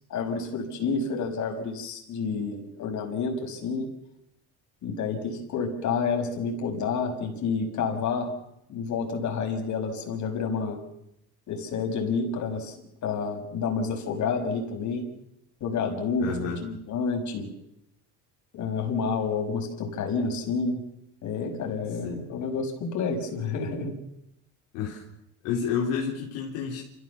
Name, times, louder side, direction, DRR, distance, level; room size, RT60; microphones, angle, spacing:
voice 1, 0.1-3.9 4.8-8.3 8.7-10.8 11.5-12.7 13.0-15.0 15.6-17.5 18.5-20.8 21.2-23.9, left 5 dB, 55° left, 2 dB, 6.3 m, -29 dB
voice 2, 16.2-16.6 22.0-22.3 24.7-25.0 25.4-26.8, left 6 dB, 80° left, -3 dB, 4.1 m, -30 dB
27.5 x 15.5 x 7.2 m, 0.80 s
supercardioid pair, 80°, 34 cm